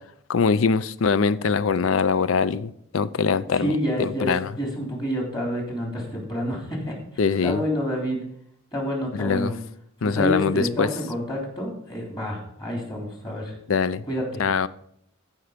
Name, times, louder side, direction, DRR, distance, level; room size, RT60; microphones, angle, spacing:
voice 1, 0.3-4.5 7.2-7.6 9.1-9.5 10.0-10.9 13.7-14.0 14.4-14.7, left 5 dB, 75° left, 0.5 m, -23 dB
voice 2, 3.4-8.2 8.7-9.6 10.0-13.5 14.1-14.4, equal, 20° left, 3.3 m, -28 dB
14.0 x 5.7 x 5.1 m
head